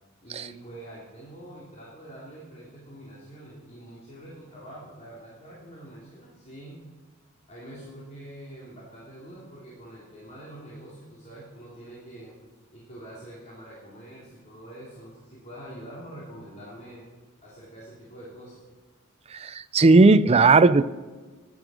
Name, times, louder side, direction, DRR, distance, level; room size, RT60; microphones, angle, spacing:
voice 1, 0.2-6.8 7.5-12.4 12.7-17.0 17.4-18.6, right 1 dB, 30° left, -6 dB, 3.1 m, -45 dB
voice 2, 19.4-20.9, right 3 dB, 30° right, 15 dB, 0.4 m, -16 dB
14.5 x 11.0 x 6.2 m, 1.3 s
head